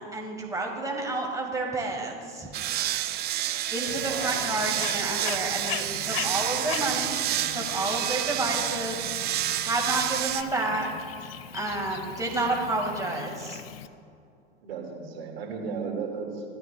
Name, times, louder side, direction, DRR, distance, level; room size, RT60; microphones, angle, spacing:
voice 1, 0.0-2.5 3.7-9.3 9.6-10.9 11.5-13.6, right 2 dB, 10° right, 0 dB, 1.9 m, -30 dB
sound 1, 2.5-10.4, right 13 dB, 30° right, 0.5 m, -29 dB
Bird, 3.9-13.9, left 10 dB, 65° left, 0.6 m, -40 dB
voice 2, 4.1-4.4 14.6-16.4, right 5 dB, 65° right, 1 dB, 2.1 m, -34 dB
16.5 x 12.5 x 2.3 m, 2.4 s
hypercardioid pair, 90°, 31 cm